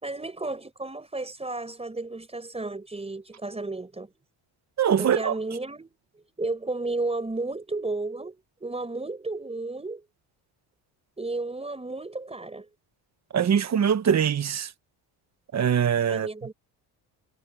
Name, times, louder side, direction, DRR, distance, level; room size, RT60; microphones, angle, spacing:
voice 1, 0.0-4.1 5.0-6.0 6.4-10.0 11.2-12.7 16.1-16.5, right 2 dB, 15° right, 4.7 m, -33 dB
voice 2, 4.8-5.3 13.3-14.7 15.5-16.3, right 8 dB, 40° right, 1.2 m, -22 dB
cardioid pair, 120°, 43 cm